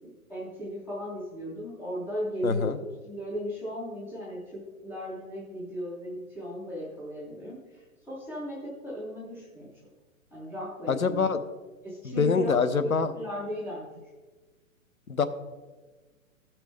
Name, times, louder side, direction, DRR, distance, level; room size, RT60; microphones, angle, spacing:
voice 1, 0.0-7.6 8.1-9.7 10.3-11.2 11.8-13.9, equal, ahead, -10 dB, 0.4 m, -36 dB
voice 2, 2.4-2.8 10.9-11.4 12.0-13.1 15.1-15.3, left 5 dB, 85° left, 10 dB, 0.9 m, -25 dB
15.0 x 6.0 x 3.4 m, 1.3 s
figure-of-eight pair, 125°, 41 cm